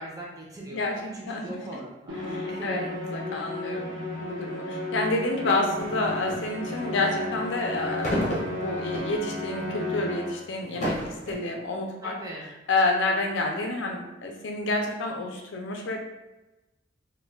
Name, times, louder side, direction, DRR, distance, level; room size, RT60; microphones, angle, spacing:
voice 1, 0.0-2.2 2.5-2.9 3.4-3.6 12.0-12.5, right 1 dB, 20° right, -3 dB, 0.6 m, -40 dB
voice 2, 0.7-1.6 2.3-11.0 11.3-12.2 12.7-16.0, left 2 dB, 65° left, 2 dB, 0.5 m, -29 dB
Musical instrument, 2.1-10.6, left 1 dB, 80° right, 0.8 m, -34 dB
sound 1, 5.8-6.5 8.0-9.2 9.7-9.9 10.6-11.3, equal, 40° left, 0.8 m, -30 dB
2.2 x 2.2 x 3.3 m, 1.0 s
head